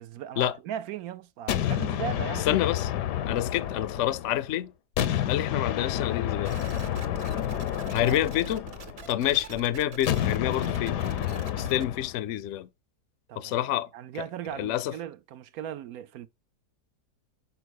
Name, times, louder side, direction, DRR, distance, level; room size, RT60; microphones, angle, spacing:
voice 1, 0.0-2.6 8.0-8.2 13.3-13.6 13.9-16.3, right 10 dB, 70° right, 1.0 m, -38 dB
sound 1, 1.5-4.5 5.0-9.2 10.1-12.2, left 11 dB, 85° left, 1.3 m, -30 dB
voice 2, 2.5-2.9 3.3-4.7 5.3-6.6 7.9-8.6 9.1-11.0 11.5-12.7 13.4-13.9 14.6-14.9, left 12 dB, 65° left, 0.7 m, -28 dB
sound 2, 6.4-11.8, right 5 dB, 45° right, 1.2 m, -44 dB
6.9 x 4.5 x 6.4 m
omnidirectional pair, 1.8 m